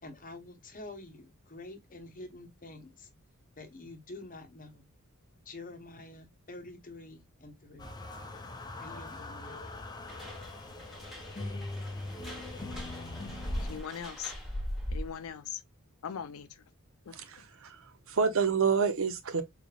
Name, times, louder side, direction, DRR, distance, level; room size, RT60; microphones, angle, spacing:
voice 1, 0.0-3.1 3.5-4.9 5.4-7.9 8.8-9.6, left 2 dB, 40° left, 0.8 m, -47 dB
sound 1, 7.8-13.8, left 2 dB, 20° left, 0.5 m, -41 dB
sound 2, 10.1-15.3, equal, ahead, 1.2 m, -40 dB
voice 2, 13.6-14.3 14.9-15.6 16.0-16.6 17.1-17.2, left 8 dB, 70° left, 0.5 m, -40 dB
voice 3, 17.1-17.8 18.1-19.4, right 6 dB, 65° right, 0.7 m, -28 dB
3.8 x 3.3 x 2.3 m
head